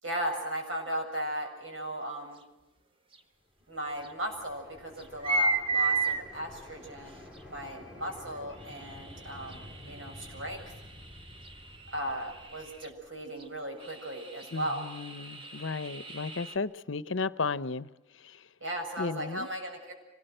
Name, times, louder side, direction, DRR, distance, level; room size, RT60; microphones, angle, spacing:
voice 1, 0.0-2.4 3.7-7.2 7.5-10.6 11.9-14.9 18.6-19.9, right 1 dB, 80° right, 7.2 m, -36 dB
sound 1, 3.1-3.2 4.0-4.1 5.0-6.2 7.4-7.5 8.6-12.9 13.4-13.5 13.8-16.6, right 3 dB, 25° right, 1.2 m, -34 dB
sound 2, 3.6-13.6, left 1 dB, 5° right, 3.1 m, -51 dB
voice 2, 14.5-17.9 18.2-18.4 19.0-19.5, left 4 dB, 75° left, 0.8 m, -34 dB
25.5 x 20.0 x 7.9 m
head